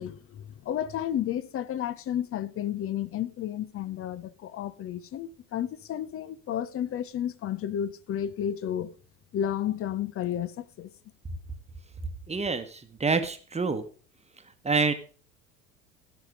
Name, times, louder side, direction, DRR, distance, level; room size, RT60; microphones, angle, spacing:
voice 1, 0.0-8.9 9.3-10.9, left 10 dB, 35° left, 0.8 m, -32 dB
voice 2, 12.3-13.8 14.6-14.9, right 4 dB, 15° right, 1.3 m, -27 dB
16.0 x 5.8 x 5.1 m
figure-of-eight pair, 65°, 40 cm